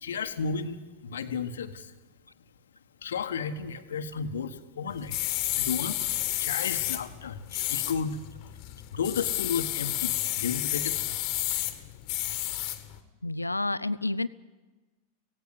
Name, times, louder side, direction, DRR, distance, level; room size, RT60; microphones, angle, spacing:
voice 1, 0.0-1.9 3.0-5.2 5.6-6.0 6.4-7.4 7.7-8.2 8.9-11.0, left 6 dB, 65° left, 9 dB, 1.4 m, -33 dB
sound 1, 4.9-13.0, left 16 dB, 40° left, 1.7 m, -31 dB
voice 2, 13.2-14.3, left 2 dB, 85° left, 17 dB, 0.6 m, -29 dB
17.5 x 17.0 x 9.7 m, 1.2 s
figure-of-eight pair, 90°, 0 cm